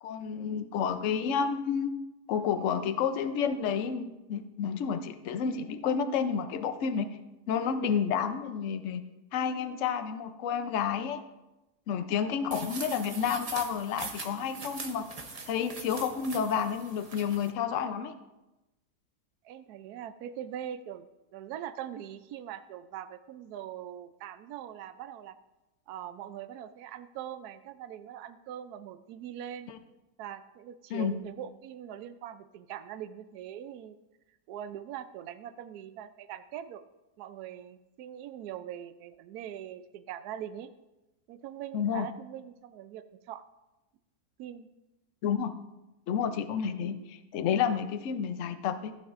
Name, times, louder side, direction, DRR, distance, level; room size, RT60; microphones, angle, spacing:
voice 1, 0.0-1.9 2.3-7.1 7.5-9.0 9.3-11.2 11.9-15.1 15.5-18.1 29.7-29.8 30.9-31.2 41.7-42.1 45.2-45.5 46.1-48.9, left 7 dB, 60° left, 9 dB, 0.9 m, -30 dB
sound 1, 12.5-17.5, right 3 dB, 35° right, 0.7 m, -42 dB
voice 2, 19.4-21.1 21.3-25.4 25.9-29.7 30.2-34.0 34.5-36.8 37.2-40.7 41.3-43.4 44.4-44.7, right 10 dB, 75° right, 12 dB, 1.1 m, -42 dB
15.0 x 8.8 x 2.5 m, 1.0 s
omnidirectional pair, 1.7 m